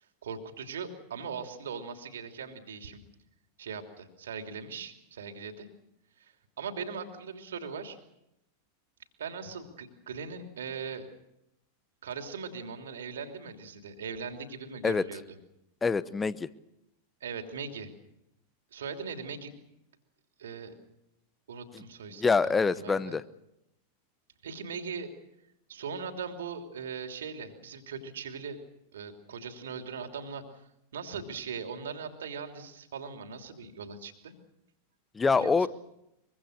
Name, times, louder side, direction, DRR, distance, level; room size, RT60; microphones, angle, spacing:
voice 1, 0.2-3.0 3.6-5.7 6.2-8.0 9.2-11.1 12.0-15.2 17.2-17.9 18.7-19.5 20.4-20.7 21.5-23.2 24.4-25.1 25.7-28.6 28.9-30.6 30.9-34.3 35.3-35.7, right 5 dB, 65° right, 5 dB, 3.1 m, -40 dB
voice 2, 15.8-16.5 21.7-21.8 22.2-23.2 35.1-35.7, left 4 dB, 15° left, 17 dB, 0.9 m, -25 dB
24.0 x 24.0 x 6.7 m, 0.84 s
figure-of-eight pair, 90°, 0 cm